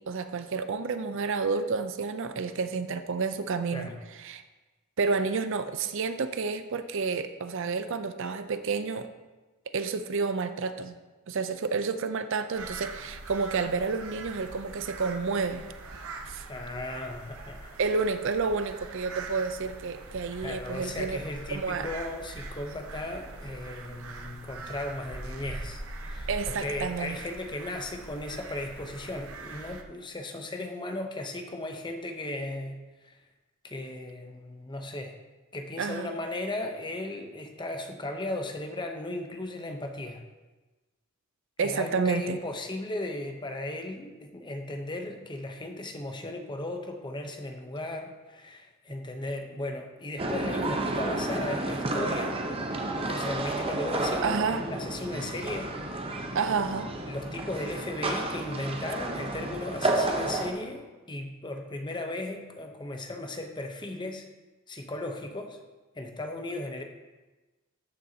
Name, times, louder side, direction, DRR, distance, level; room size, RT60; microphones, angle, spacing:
voice 1, 0.0-4.4 5.0-9.1 9.7-11.0 11.3-15.7 16.3-16.5 17.8-21.2 21.5-21.9 26.3-27.2 35.8-36.1 41.6-42.4 54.2-54.7 56.3-56.9, right 4 dB, 60° right, 10 dB, 0.5 m, -30 dB
sound 1, 12.5-29.8, right 2 dB, 80° right, 0.9 m, -42 dB
voice 2, 16.5-17.8 20.4-33.2 33.6-35.1 35.5-40.2 41.6-52.4 53.0-55.7 57.1-64.3 64.7-65.6 65.9-66.8, left 1 dB, 20° left, 4 dB, 0.8 m, -36 dB
sound 2, 50.2-60.5, right 2 dB, 25° right, 0.8 m, -31 dB
13.5 x 6.7 x 2.8 m, 1.2 s
head